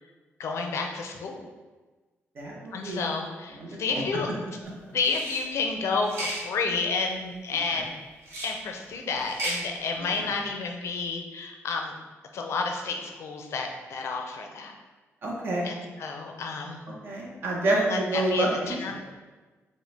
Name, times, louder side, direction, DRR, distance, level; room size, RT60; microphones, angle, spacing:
voice 1, 0.4-1.4 2.7-4.3 4.9-7.9 8.4-11.9 12.3-14.7 15.6-16.8 17.7-18.9, left 4 dB, 70° left, 3 dB, 0.5 m, -30 dB
voice 2, 2.4-3.1 3.6-4.0 7.7-7.8 10.2-10.3 15.2-15.7 17.0-18.9, right 2 dB, 50° right, -2 dB, 0.8 m, -28 dB
sound 1, 5.0-5.4 6.0-6.4 8.2-8.5 9.2-9.6, right 1 dB, 75° right, 1.3 m, -33 dB
5.1 x 2.2 x 3.3 m, 1.3 s
cardioid pair, 130°, 5 cm